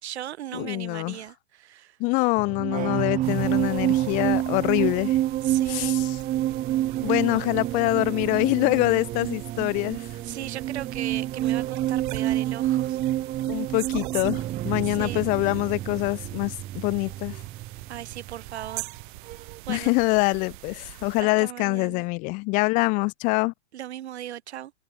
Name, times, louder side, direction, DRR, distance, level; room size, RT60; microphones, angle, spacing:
voice 1, 0.0-2.0 5.4-6.0 10.2-13.0 14.8-15.3 17.9-18.9 19.7-19.9 21.2-22.1 23.7-24.7, right 12 dB, 65° right, 5.5 m, -37 dB
voice 2, 0.5-1.2 2.0-5.2 5.7-6.1 7.0-10.1 13.5-17.4 19.7-23.5, left 26 dB, 25° left, 0.5 m, -25 dB
sound 1, 2.4-19.0 19.3-19.6, right 13 dB, 20° right, 1.3 m, -28 dB
sound 2, 3.2-21.2, right 21 dB, 45° right, 1.5 m, -42 dB
hypercardioid pair, 140°, 35 cm